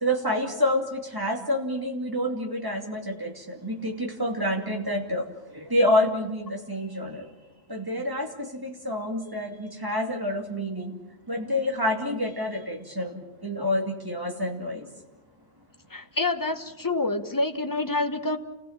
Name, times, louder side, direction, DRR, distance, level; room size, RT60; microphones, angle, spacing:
voice 1, 0.0-3.3 3.6-5.2 5.7-7.2 7.7-10.9 11.3-13.1 13.4-14.8, left 1 dB, 20° right, 1 dB, 2.5 m, -27 dB
voice 2, 15.9-18.4, left 2 dB, 20° left, 7 dB, 1.1 m, -27 dB
29.0 x 16.5 x 7.3 m, 1.0 s
omnidirectional pair, 1.1 m